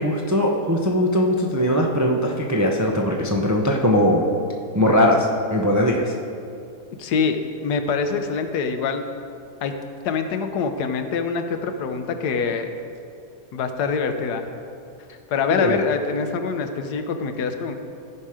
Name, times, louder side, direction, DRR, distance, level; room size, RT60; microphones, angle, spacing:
voice 1, 0.0-4.2 4.7-6.1 15.5-15.7, equal, 30° right, 0 dB, 0.3 m, -20 dB
voice 2, 7.0-9.0 9.6-9.7 10.0-12.7 13.5-14.4 15.1-17.8, left 5 dB, 80° left, 7 dB, 1.3 m, -25 dB
15.0 x 5.9 x 4.9 m, 2.6 s
omnidirectional pair, 1.7 m